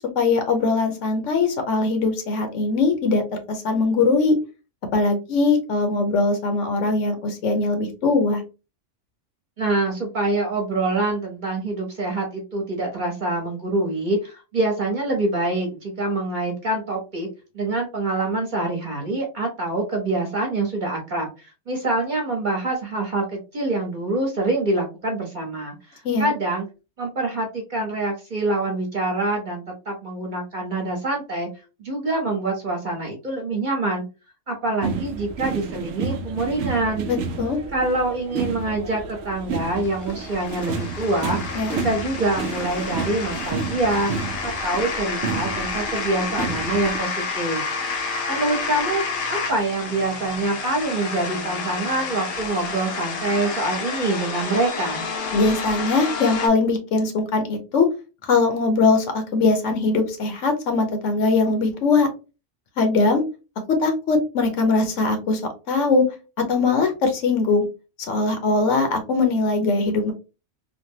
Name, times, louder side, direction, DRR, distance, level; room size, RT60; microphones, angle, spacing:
voice 1, 0.2-4.4 4.9-8.4 26.0-26.3 37.1-37.6 41.5-41.8 55.3-57.9 58.3-62.1 62.8-63.2 63.8-65.4 65.7-66.0 66.5-67.7 68.1-70.1, left 3 dB, 80° left, 5 dB, 1.1 m, -21 dB
voice 2, 9.6-17.3 17.5-26.6 27.0-31.5 31.8-34.0 34.5-37.1 37.7-41.4 41.7-44.1 44.4-47.6 48.3-49.0 49.3-55.1, right 2 dB, 40° right, 0 dB, 1.1 m, -25 dB
sound 1, 34.8-47.0, right 5 dB, 75° right, 0.9 m, -31 dB
sound 2, 39.5-56.5, left 4 dB, 55° left, 0.7 m, -30 dB
3.3 x 2.2 x 2.7 m, 0.30 s
omnidirectional pair, 1.3 m